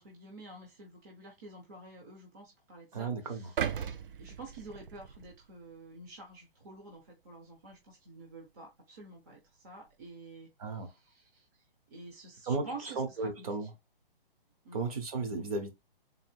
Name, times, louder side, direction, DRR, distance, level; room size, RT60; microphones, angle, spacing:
voice 1, 0.0-11.6 11.9-13.7 14.6-14.8, right 2 dB, 20° right, 0.7 m, -49 dB
voice 2, 2.9-3.5 10.6-10.9 12.5-12.6 13.0-13.7 14.7-15.7, right 4 dB, 35° right, 1.0 m, -34 dB
sound 1, 3.6-5.7 6.2-6.4, right 8 dB, 65° right, 0.6 m, -37 dB
3.8 x 2.6 x 3.5 m
hypercardioid pair, 160°, 30 cm